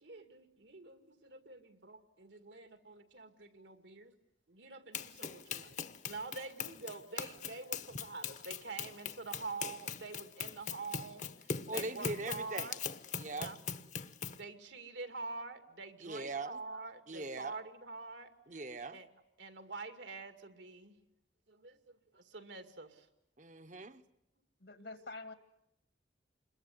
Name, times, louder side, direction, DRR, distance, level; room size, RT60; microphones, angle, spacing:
voice 1, 0.0-4.1 4.5-5.8 6.1-13.0 13.4-13.6 14.4-18.3 18.9-19.1 19.4-21.0 21.5-23.1, right 3 dB, 80° right, 2.4 m, -46 dB
Run, 4.9-14.4, left 6 dB, 40° left, 1.0 m, -41 dB
voice 2, 11.7-12.7 13.2-13.5 16.0-16.6 17.1-17.6 18.5-19.0 23.4-24.0, right 2 dB, 40° right, 1.0 m, -41 dB
voice 3, 24.6-25.3, left 3 dB, 70° left, 1.9 m, -46 dB
27.0 x 21.5 x 9.8 m
head